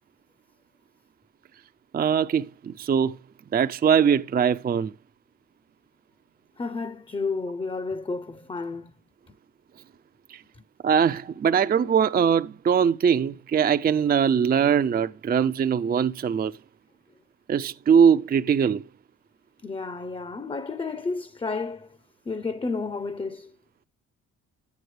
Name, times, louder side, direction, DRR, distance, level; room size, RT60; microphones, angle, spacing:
voice 1, 1.9-3.2 3.5-4.9 10.3-10.4 10.8-16.5 17.5-18.8, right 7 dB, 30° right, 0.5 m, -21 dB
voice 2, 6.6-8.9 19.6-22.0 22.3-23.6, left 4 dB, 15° left, 0.6 m, -31 dB
12.0 x 9.4 x 3.2 m
cardioid pair, 90°, 30 cm